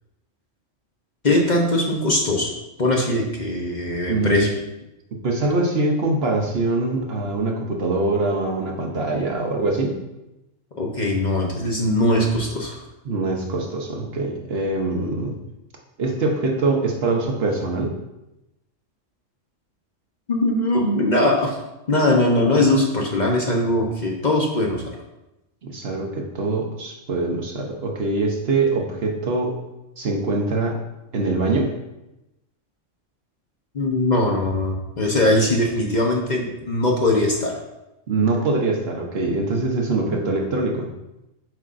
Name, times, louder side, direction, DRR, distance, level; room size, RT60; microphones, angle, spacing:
voice 1, 1.2-2.5 2.8-4.5 10.8-12.8 20.3-21.6 21.9-24.8 33.7-37.6, left 1 dB, 40° left, -1 dB, 0.9 m, -20 dB
voice 2, 4.1-4.5 5.2-10.0 13.0-15.3 16.0-17.9 25.6-29.5 30.0-30.8 31.1-31.7 38.1-40.9, right 3 dB, 55° right, 1 dB, 1.0 m, -23 dB
7.6 x 5.4 x 2.5 m, 0.94 s
omnidirectional pair, 1.3 m